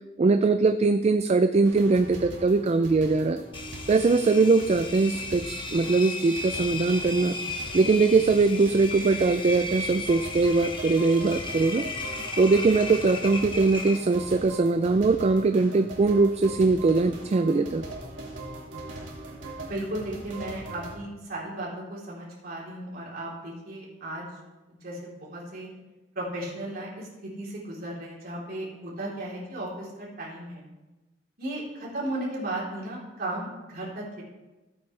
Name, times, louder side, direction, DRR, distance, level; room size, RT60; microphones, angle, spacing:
voice 1, 0.2-3.4 3.9-7.4 7.7-11.9 12.4-17.8, right 3 dB, 35° right, 10 dB, 0.3 m, -22 dB
sound 1, 1.6-21.0, right 1 dB, 85° right, 2.4 m, -41 dB
Engine, 3.5-14.4, left 3 dB, 25° left, 0.9 m, -35 dB
voice 2, 19.6-24.3 24.8-25.7 26.2-30.7 31.4-34.2, right 1 dB, 50° right, -5 dB, 3.6 m, -35 dB
15.0 x 8.6 x 3.3 m, 1.1 s
head